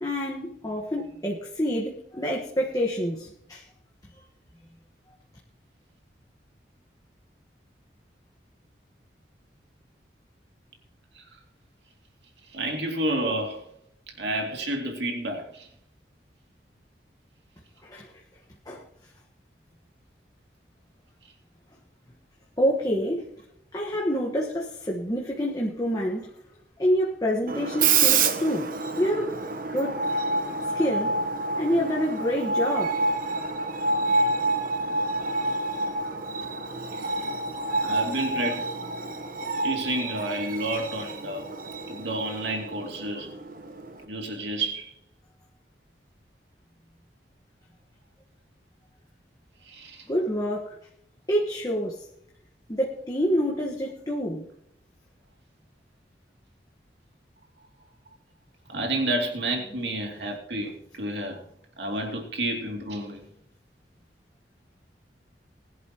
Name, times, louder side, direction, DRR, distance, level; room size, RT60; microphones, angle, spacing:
voice 1, 0.0-3.6 17.9-18.0 18.7-18.8 22.6-23.2 23.7-26.3 26.8-28.7 29.0-29.3 29.7-30.0 30.7-31.1 31.6-33.0 50.1-50.7 51.3-52.0 52.7-54.4, equal, 20° left, 1.4 m, -27 dB
voice 2, 12.5-13.6 14.2-15.7 36.9-37.1 37.8-38.7 39.6-41.5 41.9-43.3 44.1-44.9 49.6-50.1 58.7-60.7 61.0-61.4 61.8-63.2, right 1 dB, 80° right, 2.7 m, -30 dB
Screech, 27.5-44.0, right 3 dB, 50° right, 1.1 m, -28 dB
21.0 x 11.0 x 3.0 m
head